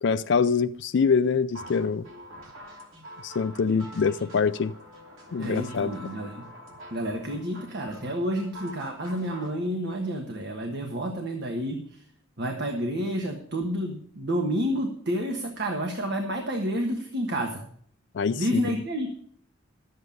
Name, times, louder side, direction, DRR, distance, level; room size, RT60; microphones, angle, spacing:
voice 1, 0.0-2.0 3.2-4.7 5.3-5.9 18.1-18.8, left 5 dB, 60° left, 0.4 m, -24 dB
sound 1, 1.5-9.5, equal, 80° right, 2.9 m, -45 dB
voice 2, 5.4-6.5 6.9-12.0 12.4-17.6 18.4-19.1, equal, 55° right, 1.4 m, -30 dB
12.5 x 8.1 x 5.3 m
head